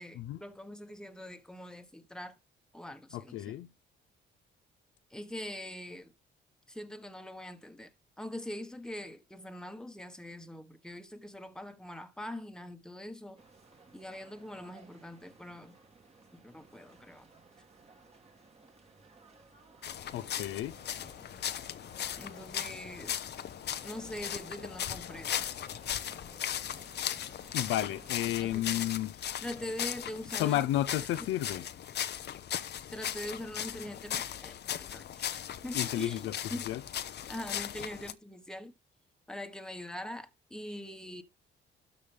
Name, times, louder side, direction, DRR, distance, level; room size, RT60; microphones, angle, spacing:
voice 1, 0.0-2.4 2.7-3.5 5.1-6.1 6.7-13.4 13.9-15.8 16.3-17.3 22.2-23.2 23.8-25.5 27.8-28.0 28.2-28.9 29.4-30.6 31.5-31.6 32.9-34.6 34.9-36.7 37.3-38.7 39.3-41.2, left 1 dB, 5° left, 1.3 m, -43 dB
voice 2, 3.1-3.7 20.1-20.7 27.5-29.1 30.4-31.6 35.7-36.3 36.7-36.8, left 13 dB, 85° left, 0.6 m, -32 dB
sound 1, 13.4-28.1, right 3 dB, 30° right, 2.3 m, -58 dB
sound 2, 19.8-38.1, left 10 dB, 60° left, 0.7 m, -38 dB
12.5 x 5.2 x 3.4 m
cardioid pair, 90°, 20 cm